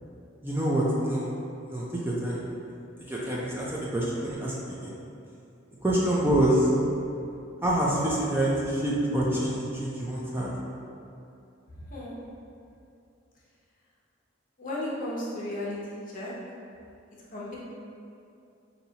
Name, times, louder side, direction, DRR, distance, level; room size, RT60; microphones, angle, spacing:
voice 1, 0.4-1.3 1.7-2.4 3.1-4.9 5.8-6.7 7.6-10.5, right 1 dB, 10° right, -6 dB, 0.5 m, -26 dB
voice 2, 11.7-12.2 14.6-15.8 16.1-16.3 17.3-17.6, left 1 dB, 45° left, -5 dB, 0.8 m, -34 dB
5.5 x 2.8 x 2.8 m, 2.6 s
head